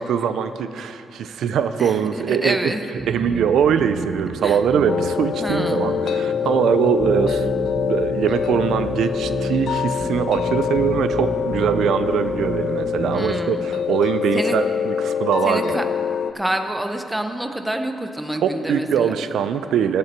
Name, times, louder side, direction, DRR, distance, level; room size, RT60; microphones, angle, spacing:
voice 1, 0.0-2.7 3.1-7.5 7.9-15.8 18.4-20.0, right 8 dB, 85° right, 11 dB, 0.4 m, -22 dB
voice 2, 1.8-2.8 4.4-4.6 5.4-5.9 13.1-13.7 14.3-14.6 15.4-15.8 16.3-19.1, right 1 dB, 5° right, 6 dB, 0.7 m, -27 dB
sound 1, 3.0-13.2, right 3 dB, 50° right, 1.1 m, -31 dB
sound 2, 4.9-16.3, left 8 dB, 75° left, 0.4 m, -25 dB
16.5 x 6.8 x 4.5 m, 2.7 s
cardioid pair, 110°, 0 cm